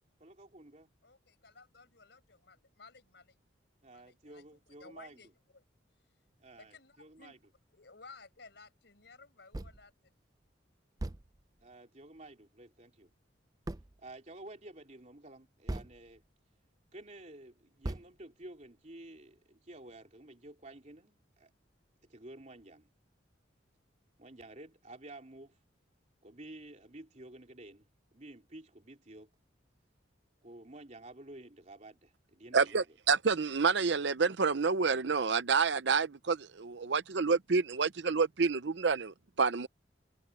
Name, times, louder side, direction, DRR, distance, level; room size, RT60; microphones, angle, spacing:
voice 1, 0.2-0.9 3.8-5.2 6.4-7.4 11.6-13.1 14.0-16.2 16.9-21.5 22.1-22.9 24.2-25.6 26.2-27.9 28.1-29.3 30.4-32.9, right 1 dB, 35° right, 3.2 m, -51 dB
voice 2, 1.0-3.4 3.9-5.6 6.5-7.4 7.7-10.2, left 4 dB, 60° left, 5.2 m, -56 dB
sound 1, 9.5-9.9 10.4-10.5 11.0-11.7 13.7-14.1 15.7-16.3 16.8-16.9 17.8-18.7, right 1 dB, 20° right, 0.5 m, -41 dB
voice 3, 32.5-39.7, right 5 dB, 60° right, 0.7 m, -28 dB
head